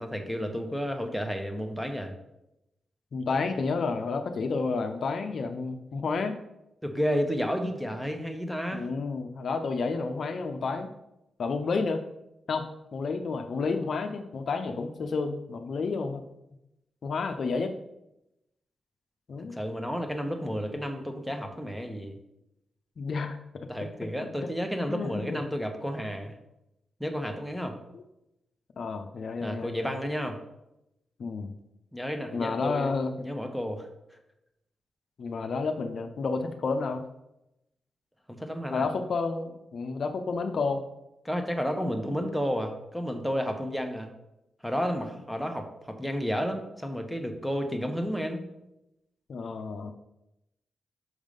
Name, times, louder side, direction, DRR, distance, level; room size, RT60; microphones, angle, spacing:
voice 1, 0.0-2.1 6.8-8.8 19.5-22.2 23.7-26.3 27.0-27.8 29.4-30.4 31.9-32.9 33.2-33.9 38.3-38.9 41.2-44.1 44.6-48.4, equal, ahead, 5 dB, 1.1 m, -31 dB
voice 2, 3.1-6.4 8.7-10.9 11.4-12.0 12.5-12.7 12.9-16.2 17.0-17.7 19.3-19.6 23.0-23.7 24.9-25.4 27.9-28.0 28.8-29.9 31.2-31.5 32.3-33.1 35.2-37.0 38.7-40.8 49.3-49.9, left 4 dB, 65° left, 6 dB, 0.6 m, -30 dB
6.3 x 3.6 x 5.2 m, 0.88 s
cardioid pair, 55°, 0 cm